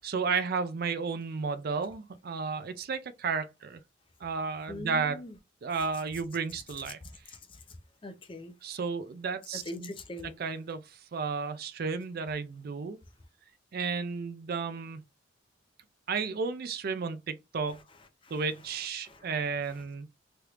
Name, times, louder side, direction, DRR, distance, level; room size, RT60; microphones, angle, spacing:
voice 1, 0.0-3.8 4.2-5.2 5.6-7.0 8.6-9.9 10.4-10.8 11.1-13.0 13.7-15.0 16.1-17.8 18.3-20.1, right 5 dB, 50° right, 0.4 m, -33 dB
voice 2, 4.7-5.4 7.0-7.6 8.0-8.5 9.5-10.4 18.2-18.4 19.0-19.8, left 1 dB, 25° left, 0.5 m, -43 dB
3.3 x 2.9 x 2.4 m
head